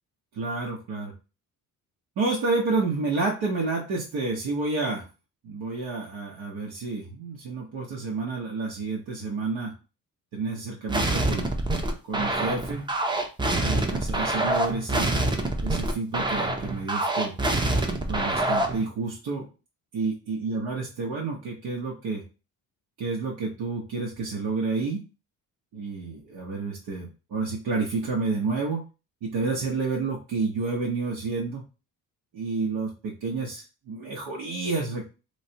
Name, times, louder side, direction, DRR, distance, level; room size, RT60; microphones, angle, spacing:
voice 1, 0.3-1.1 2.2-5.1 5.4-9.7 10.3-11.5 12.1-12.9 13.6-17.4 18.1-19.5 19.9-22.2 23.0-25.0 25.7-28.8 29.2-31.6 32.3-35.0, right 3 dB, 75° right, -3 dB, 0.9 m, -30 dB
sound 1, 10.9-18.8, right 2 dB, 15° right, 0.5 m, -26 dB
3.1 x 3.1 x 2.8 m, 0.32 s
cardioid pair, 115°, 36 cm